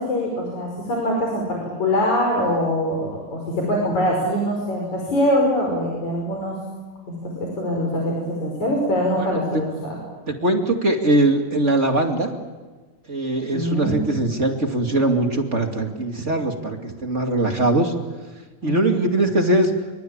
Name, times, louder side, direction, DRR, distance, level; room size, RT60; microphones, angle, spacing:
voice 1, 0.0-6.6 7.2-10.0 13.5-14.1 18.6-19.0, equal, 50° left, -1 dB, 6.7 m, -23 dB
voice 2, 10.3-12.3 13.1-17.9 18.6-19.7, right 2 dB, 25° right, 3 dB, 2.0 m, -21 dB
27.5 x 24.5 x 8.7 m, 1.3 s
omnidirectional pair, 4.3 m